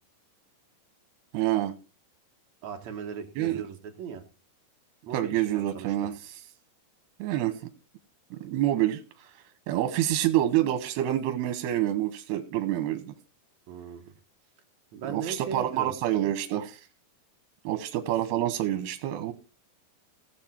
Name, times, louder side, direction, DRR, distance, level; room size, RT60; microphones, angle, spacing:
voice 1, 1.3-1.7 3.4-3.6 5.1-6.1 7.2-7.6 8.3-9.3 9.7-13.1 15.1-16.8 17.6-19.3, right 13 dB, 90° right, 9 dB, 2.9 m, -27 dB
voice 2, 2.6-4.2 5.1-6.1 13.7-14.1 14.9-16.0, right 6 dB, 60° right, 4 dB, 2.2 m, -38 dB
17.0 x 7.1 x 4.4 m, 0.33 s
omnidirectional pair, 4.5 m